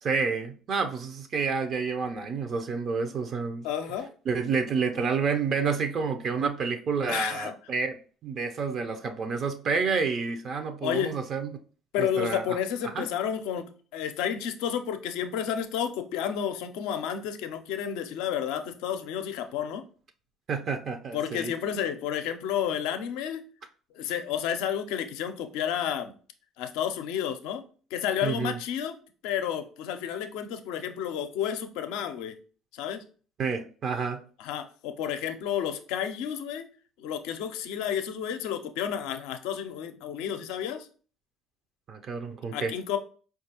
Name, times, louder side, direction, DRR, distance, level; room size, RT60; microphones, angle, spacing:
voice 1, 0.0-3.7 4.3-8.0 8.2-11.5 12.0-12.4 12.9-13.1 20.5-21.5 28.2-28.6 33.4-34.2 41.9-42.7, right 5 dB, 55° right, 0.5 m, -29 dB
voice 2, 3.6-4.1 7.1-7.5 10.8-11.2 11.9-19.8 21.1-23.4 23.9-26.1 26.6-27.6 27.9-29.0 29.2-32.4 32.7-33.0 34.4-36.7 37.0-40.9 42.5-43.0, left 9 dB, 80° left, 0.4 m, -31 dB
4.5 x 2.3 x 2.8 m
hypercardioid pair, 65°, 0 cm